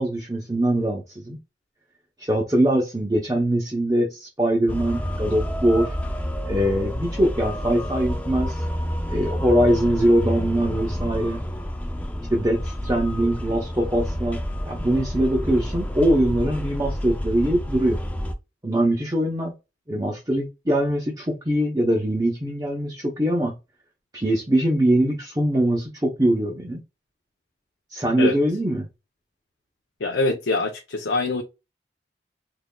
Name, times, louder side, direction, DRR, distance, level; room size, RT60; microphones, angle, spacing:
voice 1, 0.0-1.4 2.2-6.0 6.4-8.6 9.1-11.4 12.3-14.4 14.6-18.0 18.6-19.5 19.9-23.5 24.1-26.8 27.9-28.9, right 1 dB, 20° right, 0.7 m, -22 dB
sound 1, 4.7-18.3, equal, 10° left, 0.4 m, -29 dB
voice 2, 30.0-31.4, left 3 dB, 90° left, 0.6 m, -24 dB
3.7 x 3.2 x 2.2 m
head